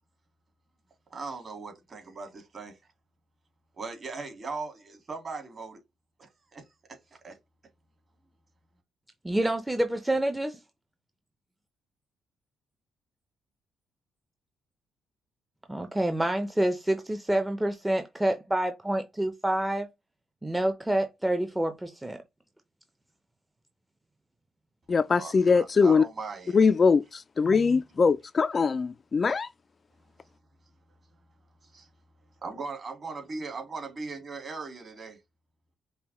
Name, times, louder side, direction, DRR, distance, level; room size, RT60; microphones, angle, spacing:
voice 1, 1.1-2.8 3.8-5.8 6.2-6.6 6.9-7.4 25.1-26.6 31.6-31.9 32.4-35.2, right 4 dB, 40° right, 1.8 m, -39 dB
voice 2, 9.2-10.6 15.7-19.9 20.4-22.2, right 1 dB, 10° right, 0.6 m, -27 dB
voice 3, 24.9-26.0 26.5-29.5, left 5 dB, 35° left, 0.3 m, -22 dB
5.4 x 2.2 x 3.0 m
cardioid pair, 90°, 0 cm